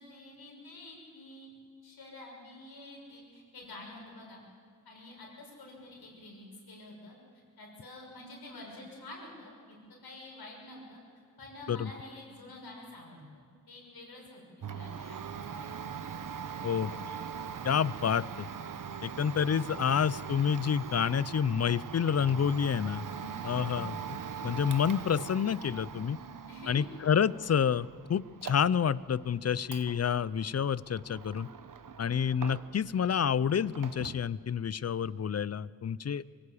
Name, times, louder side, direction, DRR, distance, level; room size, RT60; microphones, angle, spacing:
voice 1, 0.0-1.5 1.8-4.4 4.8-7.2 7.6-9.8 10.0-11.0 11.4-15.2 15.6-16.0 23.0-23.9 26.5-26.8, left 1 dB, 85° left, -1 dB, 6.6 m, -48 dB
Domestic sounds home sounds, 14.6-32.9 33.2-34.3, right 6 dB, 60° right, 1.0 m, -42 dB
voice 2, 17.6-18.5 19.0-23.1 23.4-24.2 24.4-26.2 26.7-31.5 32.0-36.2, left 7 dB, 45° left, 19 dB, 0.5 m, -29 dB
24.0 x 15.5 x 8.6 m, 2.1 s
wide cardioid pair, 80°, 37 cm